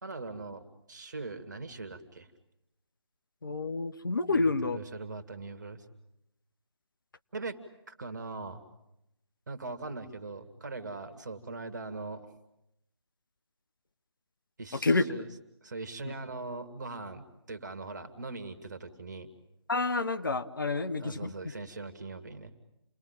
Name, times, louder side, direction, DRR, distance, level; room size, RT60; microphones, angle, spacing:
voice 1, 0.0-2.3 4.3-5.8 7.3-7.6 7.9-8.6 9.5-12.3 14.6-15.3 15.6-19.3 21.0-22.5, right 3 dB, 40° right, 11 dB, 2.2 m, -41 dB
voice 2, 3.4-4.8 14.8-15.1 16.0-16.1 19.7-21.3, left 3 dB, 45° left, 10 dB, 1.1 m, -28 dB
29.0 x 21.0 x 9.0 m, 0.85 s
figure-of-eight pair, 155°, 15 cm